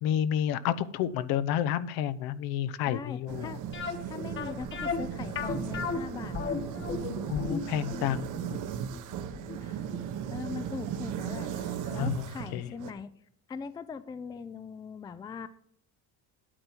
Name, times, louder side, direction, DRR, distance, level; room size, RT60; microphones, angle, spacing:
voice 1, 0.0-3.6 7.3-8.3 11.9-12.7, left 10 dB, 75° left, 13 dB, 0.8 m, -30 dB
voice 2, 2.9-3.6 4.0-6.6 9.6-9.8 10.3-13.1 13.5-15.5, left 5 dB, 10° left, 14 dB, 0.3 m, -41 dB
sound 1, 3.3-12.9, right 9 dB, 55° right, 0.9 m, -37 dB
sound 2, 3.7-10.6 10.9-11.0 11.5-11.7 11.9-12.0, left 5 dB, 30° left, 1.3 m, -35 dB
sound 3, 4.6-7.9, right 1 dB, 5° right, 1.3 m, -48 dB
10.5 x 8.8 x 4.5 m, 0.71 s
cardioid pair, 145°, 37 cm